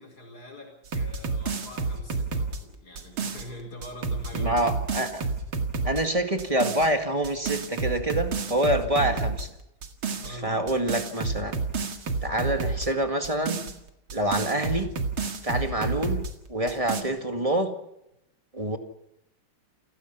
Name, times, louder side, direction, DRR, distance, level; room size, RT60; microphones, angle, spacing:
voice 1, 0.0-4.7 8.9-9.2 10.2-10.6, left 1 dB, 50° left, 0 dB, 5.3 m, -43 dB
sound 1, 0.9-3.5 3.8-6.0 6.4-6.9 7.2-9.5 9.8-10.3 10.7-12.9 13.2-16.3 16.7-17.0, right 4 dB, 80° right, 2.8 m, -30 dB
voice 2, 4.3-5.2 5.8-9.5 10.3-11.6 12.2-13.6 14.1-14.9 15.4-16.2 16.5-17.7 18.5-18.8, right 1 dB, 15° right, 5 dB, 1.9 m, -26 dB
29.0 x 17.0 x 5.7 m, 0.84 s
omnidirectional pair, 2.2 m